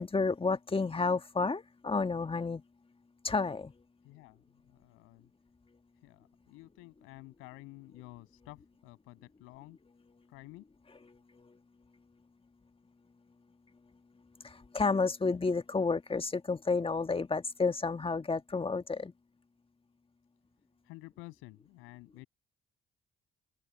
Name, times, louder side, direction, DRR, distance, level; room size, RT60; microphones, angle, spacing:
voice 1, 0.0-2.6 3.2-3.7 14.7-19.1, left 4 dB, 25° left, 1.8 m, -30 dB
voice 2, 4.0-5.3 6.0-9.8 10.3-10.6 20.8-22.3, left 22 dB, 85° left, 7.9 m, -52 dB
open air
supercardioid pair, 55°, 21 cm